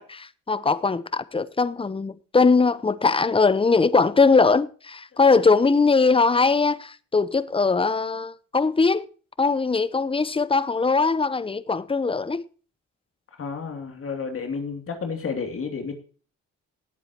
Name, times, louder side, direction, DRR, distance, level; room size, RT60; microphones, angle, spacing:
voice 1, 0.0-9.1 9.4-12.4, left 4 dB, 20° left, 0.8 m, -21 dB
voice 2, 13.4-15.9, left 5 dB, 45° left, 2.8 m, -31 dB
18.5 x 8.7 x 3.0 m
cardioid pair, 90°, 30 cm